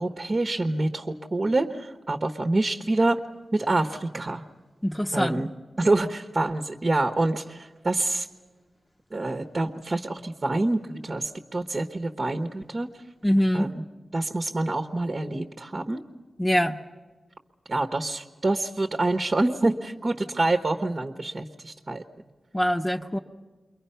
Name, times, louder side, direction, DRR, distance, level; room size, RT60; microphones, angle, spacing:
voice 1, 0.0-3.2 3.5-4.4 5.1-5.5 5.8-8.3 9.1-12.9 13.5-13.8 14.1-16.0 17.7-22.0, right 2 dB, 40° right, 6 dB, 1.2 m, -26 dB
voice 2, 4.8-5.3 13.2-13.7 16.4-16.8 22.5-23.2, equal, 15° left, 2 dB, 0.9 m, -23 dB
29.0 x 22.5 x 5.7 m, 1.3 s
cardioid pair, 65°, 0 cm